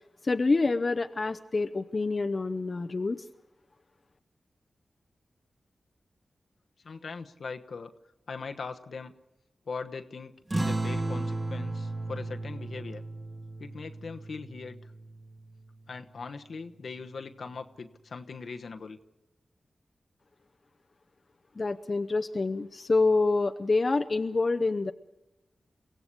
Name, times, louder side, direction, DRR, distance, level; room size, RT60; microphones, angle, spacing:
voice 1, 0.2-3.3 21.5-24.9, left 3 dB, 50° left, 7 dB, 0.8 m, -27 dB
voice 2, 6.8-7.9 8.3-9.1 9.7-13.0 13.6-14.9 15.9-19.0, left 4 dB, 75° left, 7 dB, 1.1 m, -40 dB
sound 1, 10.5-15.5, right 2 dB, 35° right, 2.7 m, -34 dB
23.0 x 16.0 x 8.4 m, 0.96 s
cardioid pair, 40°, 0 cm